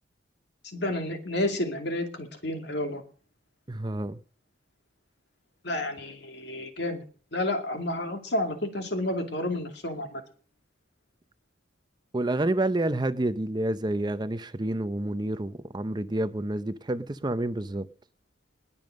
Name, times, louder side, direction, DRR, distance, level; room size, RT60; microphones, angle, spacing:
voice 1, 0.7-3.0 5.6-7.0 7.3-10.2, left 1 dB, 60° left, 2.5 m, -30 dB
voice 2, 3.7-4.2 12.1-17.9, right 1 dB, 25° right, 0.6 m, -29 dB
20.0 x 7.1 x 6.5 m
head